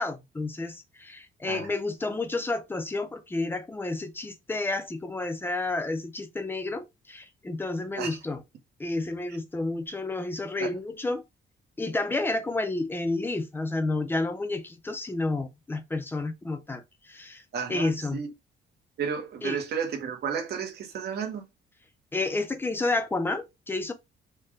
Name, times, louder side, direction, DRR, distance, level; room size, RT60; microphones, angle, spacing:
voice 1, 0.0-8.4 8.8-11.2 11.8-17.4 17.7-18.2 19.4-19.6 22.1-23.9, left 2 dB, 10° left, 0.6 m, -30 dB
voice 2, 17.5-18.3 19.0-21.4, right 6 dB, 55° right, 1.2 m, -32 dB
4.4 x 2.4 x 4.8 m
cardioid pair, 175°, 20 cm